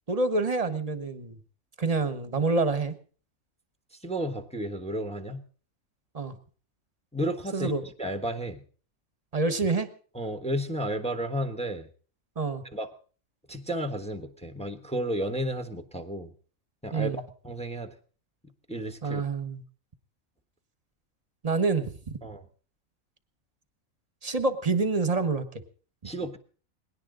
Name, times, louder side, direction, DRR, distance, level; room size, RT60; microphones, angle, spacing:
voice 1, 0.1-1.4 1.8-2.9 6.1-6.3 7.5-7.8 9.3-9.9 12.4-12.6 16.9-17.2 19.0-19.6 21.4-21.9 24.2-25.6, right 3 dB, 30° right, 11 dB, 1.2 m, -27 dB
voice 2, 4.0-5.4 7.1-8.6 10.1-11.9 12.7-12.9 13.5-16.3 16.8-17.9 18.7-19.2 22.2-22.4 26.0-26.4, right 1 dB, 5° left, 8 dB, 1.2 m, -32 dB
20.5 x 17.5 x 3.9 m, 0.41 s
omnidirectional pair, 1.5 m